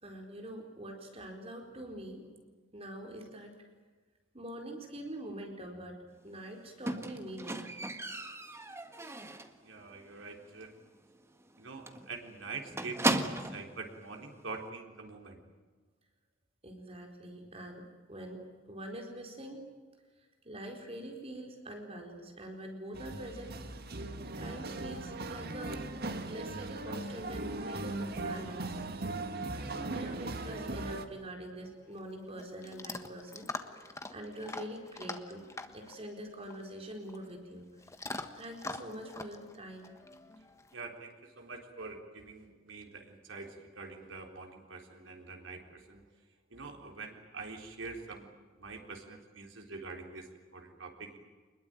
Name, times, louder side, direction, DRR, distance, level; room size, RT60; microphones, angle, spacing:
voice 1, 0.0-2.3 2.7-3.7 4.3-6.0 6.2-7.7 16.6-19.6 20.4-23.5 24.4-25.8 26.3-28.8 29.6-35.4 35.7-37.7 38.3-39.9, right 1 dB, 30° right, 2 dB, 4.3 m, -44 dB
Squeak, 6.9-9.6 10.0-10.4 10.6-10.7 11.1-11.2 11.5-11.6 11.9-13.7 14.5-14.6, right 2 dB, 15° right, 1.6 m, -35 dB
voice 2, 9.6-10.7 11.6-15.4 40.7-46.0 46.5-48.3 48.6-51.2, right 4 dB, 75° right, 2 dB, 4.0 m, -45 dB
sound 1, 22.9-31.1, right 2 dB, 55° right, 1.9 m, -39 dB
Chewing mastication / Dog, 31.6-40.7, left 2 dB, 15° left, 1.5 m, -45 dB
25.5 x 21.5 x 9.2 m, 1.4 s
head